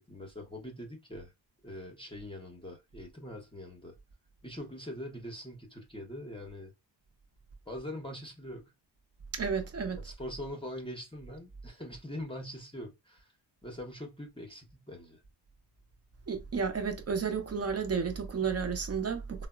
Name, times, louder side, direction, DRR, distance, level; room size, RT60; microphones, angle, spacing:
voice 1, 0.0-1.3 1.6-4.0 4.4-6.7 7.7-8.7 10.0-13.3 13.6-15.2, left 1 dB, 10° left, 0.7 m, -43 dB
voice 2, 9.3-10.0 16.3-19.5, right 6 dB, 35° right, 0.6 m, -32 dB
3.4 x 2.0 x 2.3 m
cardioid pair, 100°, 47 cm